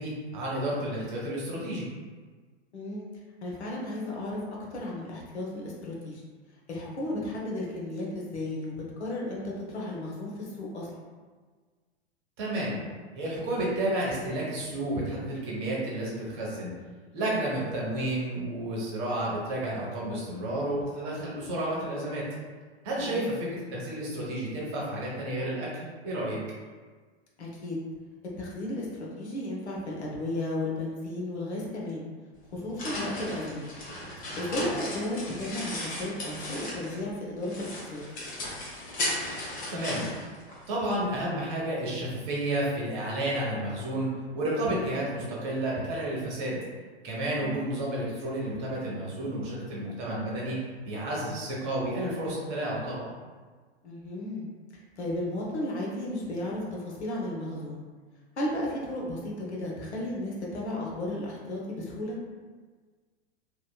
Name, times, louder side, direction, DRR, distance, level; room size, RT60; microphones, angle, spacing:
voice 1, 0.0-1.9 12.4-12.8 13.2-16.7 17.1-22.2 22.8-26.4 39.7-40.1 40.7-44.1 44.3-46.6 47.0-50.6 50.8-53.1, right 1 dB, 40° right, -5 dB, 0.9 m, -31 dB
voice 2, 2.7-3.1 3.4-6.2 6.7-9.4 9.7-10.9 23.0-23.3 27.4-27.8 28.4-28.9 29.2-32.1 32.5-33.7 34.4-38.0 47.4-47.6 53.8-54.5 55.0-57.8 58.4-62.2, left 1 dB, 80° left, -4 dB, 0.8 m, -34 dB
sound 1, 32.4-37.1 37.4-41.0, left 1 dB, 25° left, 0.7 m, -36 dB
2.8 x 2.2 x 2.2 m, 1.5 s
figure-of-eight pair, 100°, 33 cm